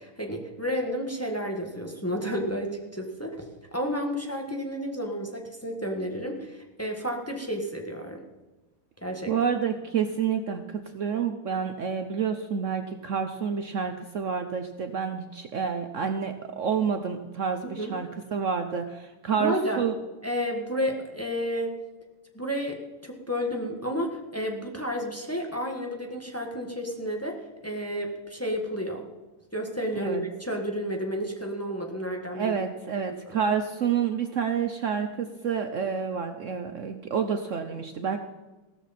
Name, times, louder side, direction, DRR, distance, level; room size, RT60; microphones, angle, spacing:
voice 1, 0.0-3.4 3.7-8.2 9.0-9.3 17.6-17.9 19.3-19.8 20.2-21.7 22.3-29.0 29.5-32.6 33.1-33.4, equal, 10° left, 1 dB, 1.3 m, -31 dB
voice 2, 9.3-19.9 29.9-30.2 32.3-38.2, right 7 dB, 85° right, 7 dB, 0.6 m, -29 dB
16.5 x 13.0 x 4.3 m, 1.2 s
omnidirectional pair, 2.4 m